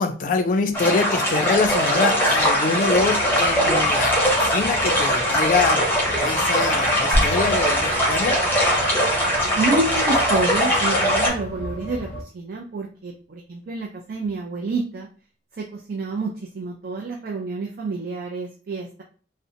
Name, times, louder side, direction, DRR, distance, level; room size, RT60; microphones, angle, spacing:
voice 1, 0.0-5.9 6.2-8.4, left 4 dB, 45° left, 6 dB, 0.3 m, -24 dB
sound 1, 0.7-11.3, equal, 10° left, 0.6 m, -21 dB
sound 2, 2.9-12.2, right 1 dB, 80° left, 0.6 m, -36 dB
sound 3, 7.1-12.2, equal, 30° right, 0.9 m, -32 dB
voice 2, 9.6-15.1 15.5-19.0, right 3 dB, 50° right, 0 dB, 0.4 m, -28 dB
2.5 x 2.1 x 2.6 m, 0.41 s
head